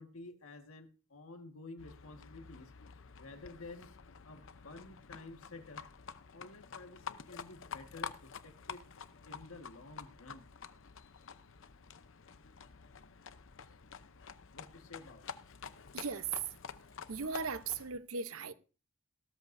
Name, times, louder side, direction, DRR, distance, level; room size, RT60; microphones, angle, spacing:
voice 1, 0.0-2.7 3.2-3.9 4.2-5.8 6.3-8.8 9.2-10.5 13.6-13.7 14.5-15.3, left 2 dB, 90° left, 1.6 m, -51 dB
Livestock farm animals working animals, 1.8-17.9, left 6 dB, 65° left, 0.7 m, -49 dB
voice 2, 15.9-16.5 17.1-18.5, right 5 dB, 80° right, 0.9 m, -37 dB
16.0 x 13.0 x 2.7 m
head